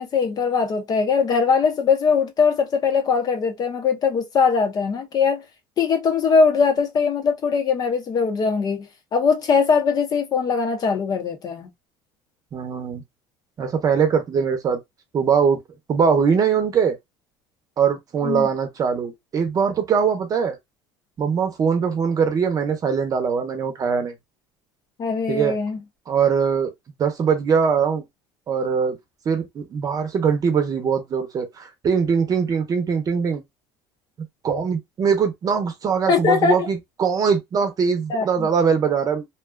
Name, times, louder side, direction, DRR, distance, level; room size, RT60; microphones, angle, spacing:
voice 1, 0.0-5.4 5.8-11.7 18.2-18.5 25.0-25.8 36.1-36.7 38.1-38.5, left 5 dB, 40° left, 0.7 m, -21 dB
voice 2, 12.5-13.0 13.6-14.8 15.1-15.6 15.9-17.0 17.8-20.6 21.2-24.1 25.3-25.6 26.1-26.7 27.0-28.0 28.5-29.0 29.2-33.4 34.4-39.3, right 6 dB, 35° right, 0.8 m, -21 dB
2.6 x 2.3 x 2.3 m
cardioid pair, 120°, 10 cm